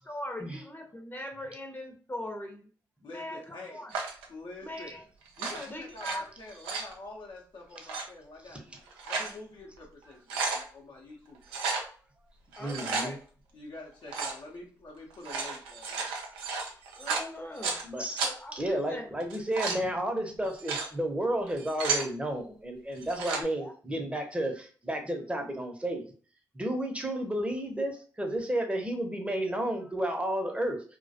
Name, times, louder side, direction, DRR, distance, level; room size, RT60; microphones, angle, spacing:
voice 1, 0.0-2.7 3.1-3.9 4.6-5.0 5.7-6.2 12.6-13.2 17.0-17.8 18.2-19.1 23.5-23.7, left 1 dB, 25° left, 3 dB, 0.7 m, -40 dB
voice 2, 3.0-3.8 4.3-5.0 5.4-8.6 9.0-11.7 12.8-13.2 13.5-16.1, left 2 dB, 65° left, -3 dB, 0.7 m, -46 dB
sound 1, 3.9-4.3 5.3-6.2 6.5-6.9 7.8-8.0 8.7-9.3 9.8-9.9 10.1-10.6 11.5-11.9 12.5-13.1 14.1-14.4 15.1-17.8 18.2-18.3 19.2-19.8 20.4-20.9 21.5-22.1 23.0-23.4, right 4 dB, 85° right, 0.4 m, -33 dB
voice 3, 12.6-13.1 17.8-18.2 18.5-26.0 26.5-31.0, right 1 dB, 15° right, 3 dB, 0.7 m, -32 dB
2.2 x 2.1 x 2.7 m, 0.41 s
hypercardioid pair, 40°, 9 cm